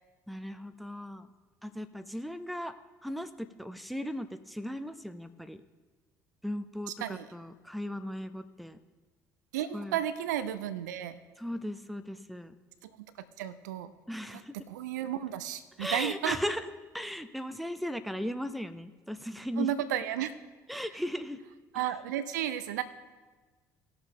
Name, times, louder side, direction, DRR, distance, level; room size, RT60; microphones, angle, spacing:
voice 1, 0.3-1.3 1.6-2.7 3.0-5.6 6.4-6.9 7.3-8.8 9.7-9.9 11.4-12.5 14.1-14.5 15.8-16.6 16.9-19.7 20.7-21.4, equal, ahead, 11 dB, 0.7 m, -37 dB
voice 2, 6.9-7.3 9.5-11.2 12.8-12.9 13.2-13.9 14.3-16.4 19.6-20.3 20.9-21.0 21.7-22.8, right 11 dB, 70° right, 12 dB, 0.6 m, -33 dB
19.0 x 6.8 x 3.0 m, 1.3 s
figure-of-eight pair, 55°, 10 cm